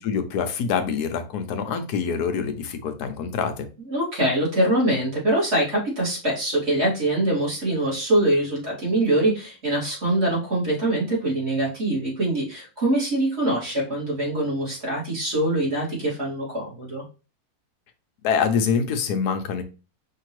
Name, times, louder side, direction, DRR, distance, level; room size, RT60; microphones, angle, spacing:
voice 1, 0.0-3.7 18.2-19.6, left 6 dB, 90° left, 7 dB, 1.3 m, -25 dB
voice 2, 3.9-17.0, right 1 dB, 45° right, -6 dB, 2.6 m, -23 dB
5.2 x 2.8 x 3.0 m, 0.32 s
omnidirectional pair, 1.6 m